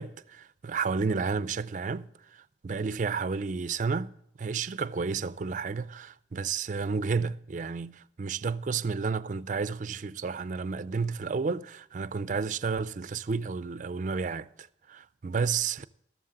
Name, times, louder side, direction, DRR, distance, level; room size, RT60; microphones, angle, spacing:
voice 1, 0.0-4.1 4.4-15.8, right 5 dB, 45° right, 0.4 m, -31 dB
13.5 x 13.0 x 3.8 m
head